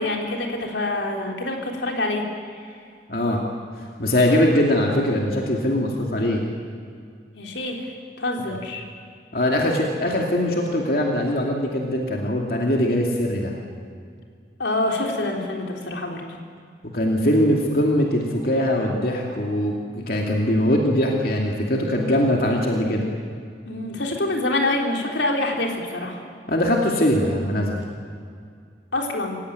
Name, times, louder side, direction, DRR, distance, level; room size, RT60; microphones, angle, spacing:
voice 1, 0.0-2.2 7.3-7.9 8.2-8.8 14.6-16.2 23.7-26.2 28.9-29.4, left 2 dB, 85° left, 1 dB, 3.8 m, -26 dB
voice 2, 3.1-3.4 4.0-6.4 9.3-13.5 16.9-23.1 26.5-27.8, left 1 dB, 55° left, 0 dB, 2.6 m, -21 dB
26.5 x 16.5 x 9.3 m, 2.2 s
head